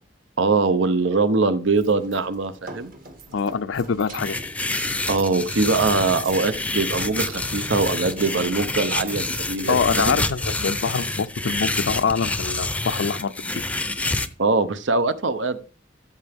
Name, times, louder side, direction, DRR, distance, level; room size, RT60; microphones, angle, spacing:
voice 1, 0.4-2.9 5.1-10.2 14.4-15.6, right 3 dB, 70° right, 0.8 m, -22 dB
sound 1, 1.6-11.6, right 4 dB, 45° right, 1.7 m, -43 dB
voice 2, 3.3-4.4 9.7-13.3, left 5 dB, 75° left, 0.5 m, -24 dB
sound 2, 4.2-14.3, left 2 dB, 5° left, 0.6 m, -27 dB
13.5 x 6.7 x 3.5 m
head